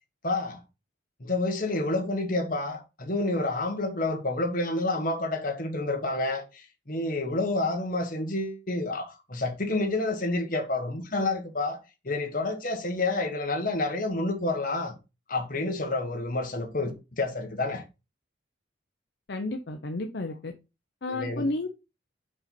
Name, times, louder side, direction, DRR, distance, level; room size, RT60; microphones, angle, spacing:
voice 1, 0.2-0.6 1.2-14.9 15.3-17.8 21.1-21.5, left 2 dB, 45° left, 1.4 m, -29 dB
voice 2, 19.3-20.5 21.0-21.7, left 2 dB, 60° left, 0.6 m, -31 dB
5.4 x 5.3 x 4.4 m
head